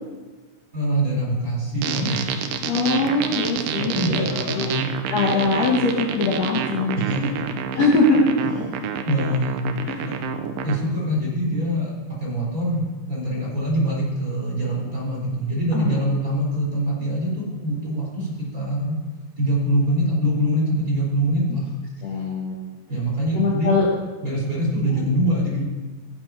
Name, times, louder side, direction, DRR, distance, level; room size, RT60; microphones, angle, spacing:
voice 1, 0.7-2.5 3.8-4.9 5.1-5.3 6.9-7.4 7.7-7.8 8.8-9.6 10.0-10.2 10.6-11.9 12.2-19.0 19.4-21.7 22.9-23.7 24.2-25.6, equal, 20° right, -5 dB, 4.3 m, -24 dB
sound 1, 1.8-10.8, right 8 dB, 75° right, 2.4 m, -28 dB
voice 2, 2.7-4.3 4.5-4.7 5.1-7.0 7.7-8.4 9.9-10.1 15.7-16.0 22.0-22.6 23.3-23.9 24.9-25.0, left 2 dB, 55° left, -4 dB, 2.3 m, -21 dB
16.5 x 7.5 x 5.8 m, 1.3 s
omnidirectional pair, 4.3 m